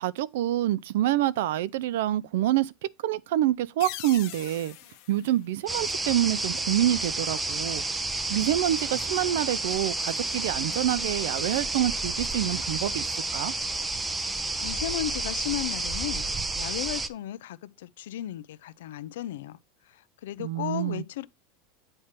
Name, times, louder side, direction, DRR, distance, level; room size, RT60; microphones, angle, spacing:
voice 1, 0.0-4.8 5.1-7.8 8.3-13.1 13.3-13.5 20.4-21.0, right 13 dB, 75° right, 0.4 m, -27 dB
sound 1, 3.8-6.4, left 13 dB, 50° left, 0.8 m, -43 dB
sound 2, 5.7-17.1, right 2 dB, 10° right, 0.4 m, -30 dB
voice 2, 14.6-16.2 16.5-19.6 20.2-21.3, left 12 dB, 85° left, 0.5 m, -34 dB
8.8 x 3.3 x 5.8 m
supercardioid pair, 165°, 0 cm